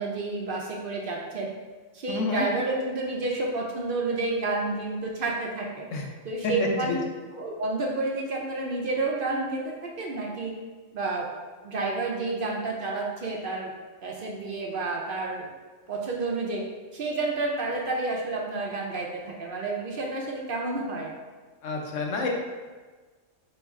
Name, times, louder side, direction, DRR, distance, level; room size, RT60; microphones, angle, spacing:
voice 1, 0.0-1.5 1.9-5.9 6.2-7.0 7.3-10.5 10.9-11.3 11.6-13.7 14.0-15.5 15.9-16.6 16.9-21.1, right 3 dB, 55° right, -1 dB, 0.7 m, -30 dB
voice 2, 2.1-2.5 5.9-6.0 6.4-6.7 21.6-22.3, left 3 dB, 85° left, 1 dB, 1.1 m, -29 dB
4.1 x 3.1 x 3.5 m, 1.4 s
omnidirectional pair, 1.3 m